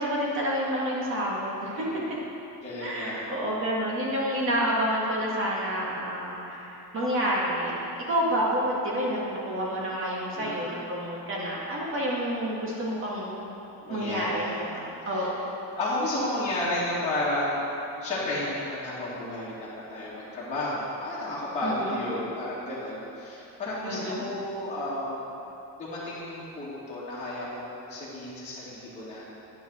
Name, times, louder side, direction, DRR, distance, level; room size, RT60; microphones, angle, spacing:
voice 1, 0.0-1.9 2.8-13.5 13.8-15.5 21.6-22.0 23.8-24.2, equal, 30° right, -4 dB, 2.1 m, -29 dB
voice 2, 1.7-2.1 2.6-3.2 10.3-10.7 13.9-14.5 15.0-15.3 15.7-25.3 25.8-29.2, left 1 dB, 15° left, -11 dB, 2.4 m, -32 dB
9.7 x 6.9 x 6.4 m, 2.9 s
cardioid pair, 165°, 39 cm